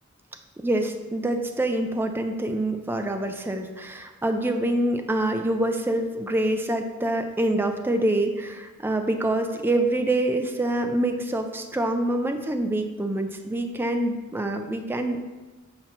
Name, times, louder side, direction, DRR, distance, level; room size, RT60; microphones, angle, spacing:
voice 1, 0.6-15.2, right 1 dB, 10° right, 5 dB, 0.4 m, -26 dB
7.6 x 2.8 x 5.8 m, 1.2 s
head